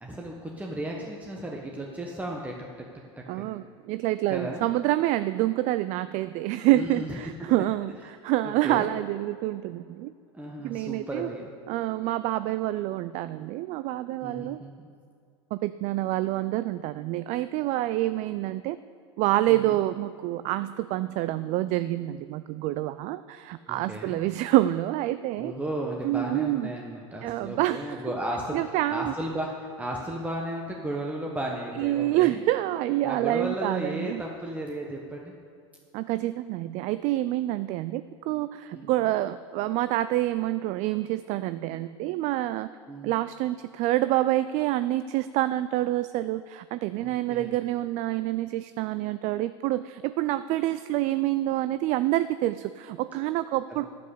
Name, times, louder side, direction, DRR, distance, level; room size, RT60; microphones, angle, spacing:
voice 1, 0.0-2.5 3.3-3.5 4.3-4.7 6.7-7.2 8.4-8.9 10.3-11.5 14.2-14.9 19.5-19.8 23.7-24.2 25.4-32.4 33.0-35.3 38.7-38.9 42.9-43.2 46.9-47.5 53.7-53.9, right 1 dB, 10° right, -1 dB, 1.3 m, -34 dB
voice 2, 3.3-10.1 10.6-11.3 11.7-14.6 15.5-18.8 19.2-25.5 26.0-26.7 27.2-28.0 28.5-29.1 31.8-34.2 35.9-42.7 43.0-53.8, right 15 dB, 50° right, 14 dB, 0.4 m, -27 dB
9.2 x 7.8 x 8.4 m, 2.3 s
hypercardioid pair, 95°, 15 cm